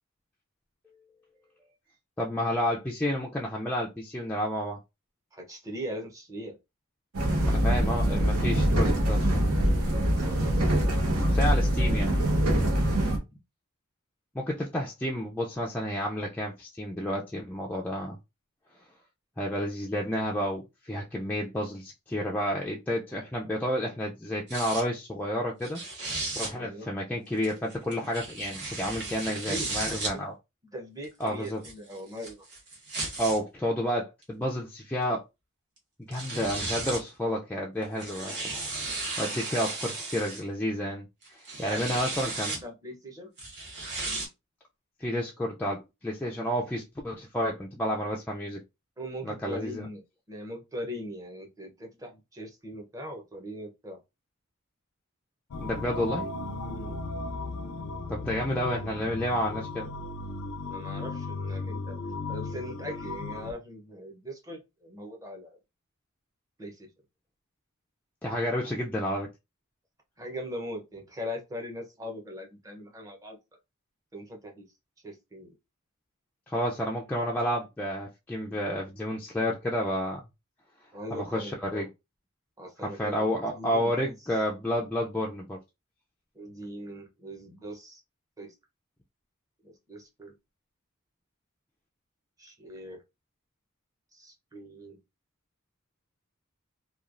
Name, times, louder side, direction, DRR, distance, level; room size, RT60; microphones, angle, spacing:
voice 1, 2.2-4.8 7.4-9.4 11.3-12.1 14.3-18.2 19.4-25.8 26.4-30.3 31.2-31.6 33.2-35.2 36.1-42.6 45.0-48.6 49.2-49.9 55.6-56.3 58.1-59.9 68.2-69.3 76.5-80.2 81.1-81.9 82.8-85.6, equal, 5° left, 0.3 m, -30 dB
voice 2, 5.3-6.6 10.2-10.4 26.5-26.9 29.3-30.2 30.7-32.5 41.6-43.3 49.0-50.0 50.3-54.0 56.6-57.0 60.7-62.0 62.3-65.6 66.6-66.9 70.2-73.4 74.1-74.7 75.0-75.5 80.9-81.9 82.6-84.2 86.3-88.0 88.4-88.5 89.6-90.3 92.4-93.0 94.1-95.0, equal, 15° right, 0.7 m, -40 dB
sound 1, 7.1-13.2, equal, 80° right, 0.9 m, -24 dB
sound 2, 24.5-24.8 25.6-26.5 27.4-30.1 31.0-33.4 34.2-34.3 35.8-35.9 36.1-37.1 37.8-40.4 41.2-42.6 43.4-44.3, right 3 dB, 50° right, 1.1 m, -35 dB
sound 3, 55.5-63.5, left 3 dB, 75° left, 0.4 m, -36 dB
3.0 x 2.3 x 2.4 m
head